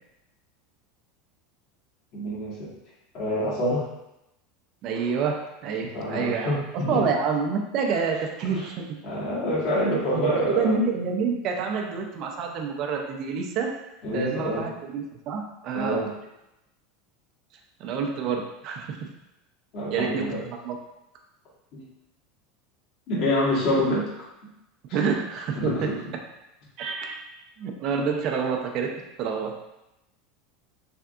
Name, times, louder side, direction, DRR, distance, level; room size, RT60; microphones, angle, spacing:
voice 1, 2.1-2.7 3.1-3.8 5.9-7.0 8.5-8.7 9.0-10.8 14.0-14.7 15.7-16.1 19.7-20.4 21.7-21.8 23.1-24.2 24.9-25.0 25.5-25.9, left 1 dB, 55° left, -6 dB, 1.4 m, -27 dB
voice 2, 4.8-9.0 9.9-13.8 14.1-16.0 17.8-19.1 19.9-20.8 24.9-25.9 26.8-27.2 27.6-29.6, right 5 dB, 55° right, 3 dB, 0.4 m, -28 dB
3.4 x 2.6 x 2.4 m, 0.90 s
hypercardioid pair, 105°, 0 cm